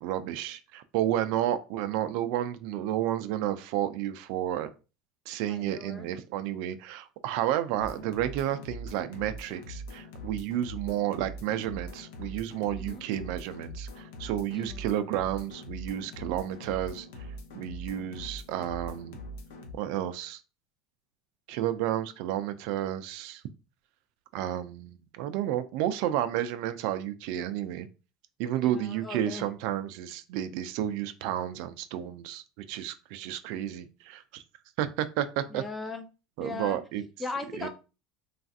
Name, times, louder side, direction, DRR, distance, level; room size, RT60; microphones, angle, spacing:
voice 1, 0.0-4.7 5.3-17.1 17.5-19.2 19.7-20.4 21.5-23.4 24.3-27.9 28.4-32.4 32.7-34.4 34.8-35.6 36.4-37.0 37.6-37.7, right 12 dB, 65° right, 0.3 m, -31 dB
voice 2, 5.5-6.1 12.8-13.0 14.5-14.8 28.5-29.5 33.5-33.6 35.5-36.0 36.4-36.8 37.2-37.7, left 3 dB, 15° left, 0.4 m, -38 dB
sound 1, 7.8-19.7, equal, 85° left, 0.6 m, -42 dB
3.2 x 2.4 x 2.6 m
supercardioid pair, 140°, 0 cm